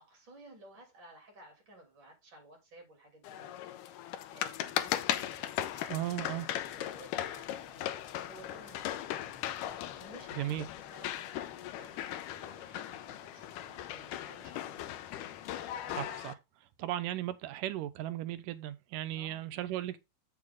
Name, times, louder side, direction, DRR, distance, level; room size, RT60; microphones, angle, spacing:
voice 1, 0.1-4.0 4.3-7.9 8.3-9.3 9.9-14.9 19.1-19.5, right 2 dB, 35° right, 3.8 m, -56 dB
sound 1, 3.2-16.3, left 12 dB, 85° left, 2.2 m, -38 dB
sound 2, 4.0-16.3, left 1 dB, ahead, 5.0 m, -62 dB
voice 2, 5.9-6.5 10.4-10.7 15.9-16.4 16.8-20.0, right 13 dB, 85° right, 2.4 m, -36 dB
7.7 x 6.7 x 3.7 m
omnidirectional pair, 3.7 m